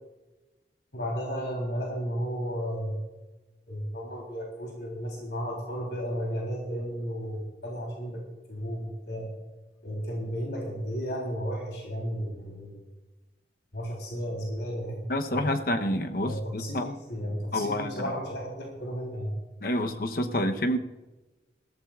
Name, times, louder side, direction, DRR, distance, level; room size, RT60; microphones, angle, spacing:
voice 1, 0.9-3.0 3.7-8.2 8.5-9.3 9.8-12.8 13.7-15.0 15.3-15.5 16.2-19.4, equal, 85° left, -2 dB, 3.6 m, -33 dB
voice 2, 15.1-16.9 17.5-18.0 19.6-20.8, left 1 dB, 55° left, 6 dB, 0.9 m, -28 dB
20.0 x 15.0 x 2.5 m, 1.1 s
head